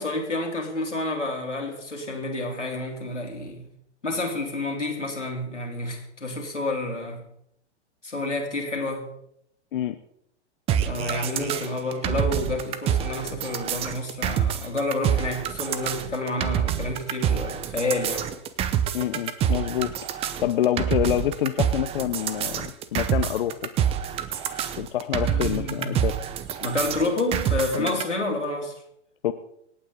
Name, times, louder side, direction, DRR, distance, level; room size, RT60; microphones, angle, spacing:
voice 1, 0.0-3.7 4.0-7.3 8.0-9.1 10.8-18.3 25.2-26.0 26.6-28.7, left 2 dB, 85° left, 3.6 m, -29 dB
sound 1, 10.7-28.0, right 9 dB, 15° right, 0.7 m, -27 dB
voice 2, 18.9-19.9 20.4-23.6 24.8-26.1 27.8-27.9 29.2-29.3, left 11 dB, 50° left, 0.9 m, -26 dB
26.5 x 8.9 x 3.9 m
figure-of-eight pair, 115°, 35 cm